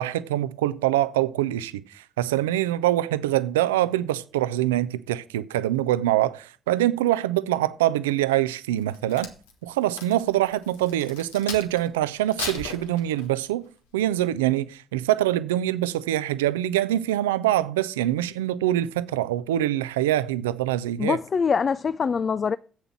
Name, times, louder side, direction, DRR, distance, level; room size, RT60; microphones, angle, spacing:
voice 1, 0.0-9.3 9.6-13.7 13.9-21.2, right 13 dB, 85° right, 0.4 m, -24 dB
Crack, 8.8-11.9 12.3-13.5 14.0-14.3, left 5 dB, 85° left, 1.3 m, -37 dB
voice 2, 21.0-22.6, left 6 dB, 45° left, 0.4 m, -24 dB
8.0 x 7.3 x 7.2 m
hypercardioid pair, 45°, 0 cm